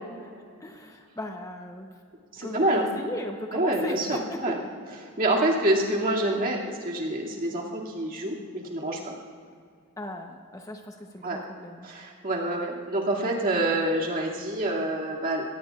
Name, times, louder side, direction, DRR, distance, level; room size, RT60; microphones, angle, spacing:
voice 1, 0.6-1.9 2.4-4.6 10.0-11.9, left 1 dB, 15° left, 3 dB, 0.9 m, -37 dB
voice 2, 2.3-2.9 3.5-4.6 5.2-9.1 11.2-11.4 11.8-15.4, right 1 dB, 40° right, -3 dB, 2.4 m, -27 dB
22.5 x 18.0 x 2.5 m, 2.2 s
head